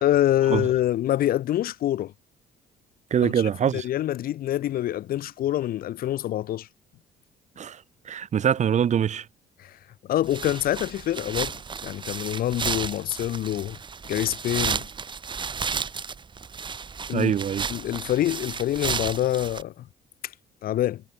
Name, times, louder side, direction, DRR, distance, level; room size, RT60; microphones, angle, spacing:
voice 1, 0.0-2.1 3.2-3.3 3.7-6.7 9.6-9.8 10.1-13.8 14.1-14.9 17.1-17.3 17.7-19.8 20.6-21.0, left 13 dB, 60° left, 1.0 m, -26 dB
voice 2, 3.1-3.8 7.6-9.3 17.1-17.6, right 8 dB, 45° right, 1.7 m, -24 dB
sound 1, 10.2-19.6, right 5 dB, 30° right, 1.3 m, -33 dB
cardioid pair, 110°, 17 cm